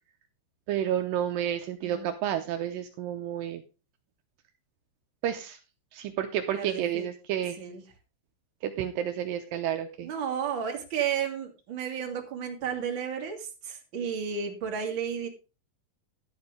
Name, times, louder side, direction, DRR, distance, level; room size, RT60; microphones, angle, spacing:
voice 1, 0.7-3.6 5.2-5.6 5.9-7.6 8.6-10.1, right 10 dB, 85° right, 7 dB, 2.0 m, -30 dB
voice 2, 6.5-7.0 7.6-7.8 10.0-15.3, right 7 dB, 40° right, 3 dB, 2.0 m, -32 dB
11.5 x 9.5 x 3.3 m, 0.30 s
omnidirectional pair, 4.9 m